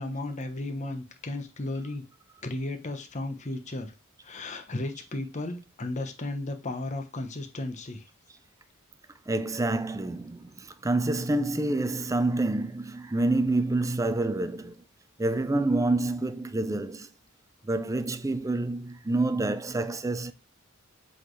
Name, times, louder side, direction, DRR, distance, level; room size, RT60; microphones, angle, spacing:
voice 1, 0.0-2.0 2.4-3.9 4.2-8.0, left 2 dB, 35° left, 1.0 m, -34 dB
voice 2, 9.3-14.8 15.2-17.1 17.6-20.3, right 2 dB, 15° right, 0.4 m, -27 dB
7.5 x 4.0 x 3.2 m
head